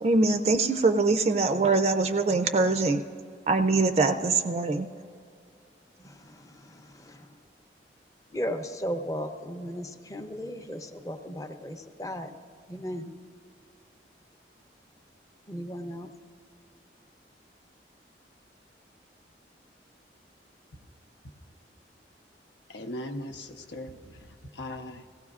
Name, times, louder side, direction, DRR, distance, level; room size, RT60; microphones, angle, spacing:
voice 1, 0.0-3.0 3.5-4.9, right 3 dB, 35° right, 8 dB, 0.4 m, -23 dB
voice 2, 6.0-7.3 8.3-12.3 12.7-13.1 15.5-16.1, equal, 20° left, 6 dB, 0.6 m, -36 dB
voice 3, 22.7-24.3 24.5-25.0, left 1 dB, 75° left, 6 dB, 0.7 m, -39 dB
18.0 x 15.5 x 2.4 m, 2.4 s
head